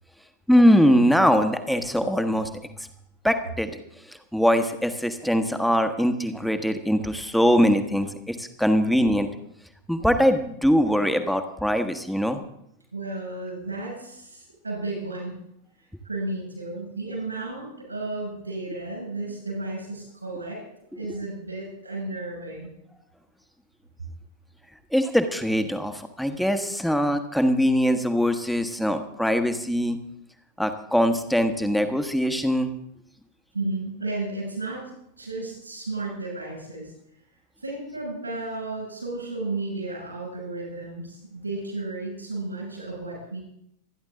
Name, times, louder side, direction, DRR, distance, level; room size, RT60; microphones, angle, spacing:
voice 1, 0.5-2.5 3.2-3.8 4.1-9.3 9.9-12.4 24.9-30.0 30.6-32.7, equal, ahead, 7 dB, 1.3 m, -22 dB
voice 2, 12.9-15.3 15.8-20.6 20.9-22.7 33.5-34.9 35.2-36.9 37.6-43.4, right 2 dB, 80° right, -1 dB, 6.4 m, -33 dB
27.0 x 10.5 x 3.8 m, 0.74 s
figure-of-eight pair, 90°, 0 cm